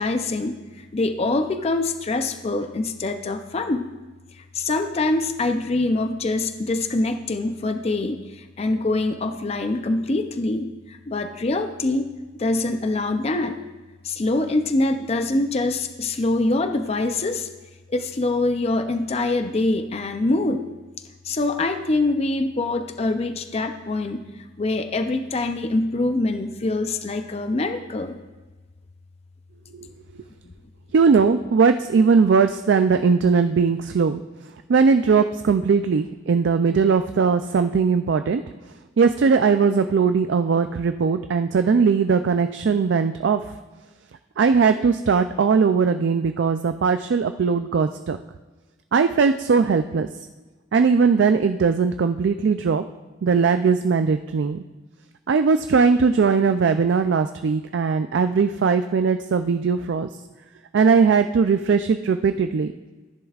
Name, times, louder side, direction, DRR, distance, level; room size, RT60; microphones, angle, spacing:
voice 1, 0.0-3.8 4.3-12.1 12.3-13.6 14.0-17.5 17.9-20.6 21.2-24.3 24.6-28.2, left 2 dB, 35° left, 7 dB, 0.5 m, -24 dB
voice 2, 30.9-34.2 34.7-38.4 39.0-43.4 44.4-48.2 48.9-50.1 50.7-52.8 53.2-54.6 55.3-60.1 60.7-62.7, right 5 dB, 65° right, 8 dB, 0.4 m, -19 dB
14.5 x 10.5 x 2.4 m, 1.3 s
head